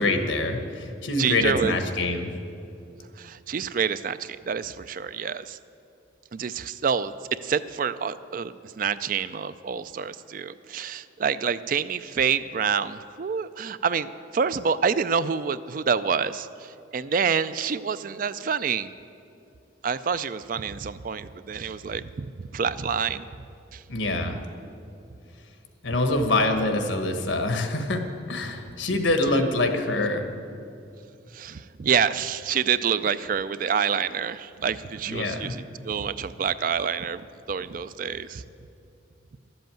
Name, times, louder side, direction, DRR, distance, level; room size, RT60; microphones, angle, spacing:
voice 1, 0.0-2.3 23.9-24.3 25.8-28.0 28.3-30.2 35.1-35.5, left 2 dB, 75° left, 6 dB, 1.3 m, -25 dB
voice 2, 1.2-1.8 3.2-5.6 6.3-18.9 19.8-22.3 22.5-23.3 23.7-23.8 24.2-24.4 31.3-38.4, right 6 dB, 45° right, 14 dB, 0.3 m, -27 dB
12.5 x 7.8 x 9.1 m, 2.7 s
head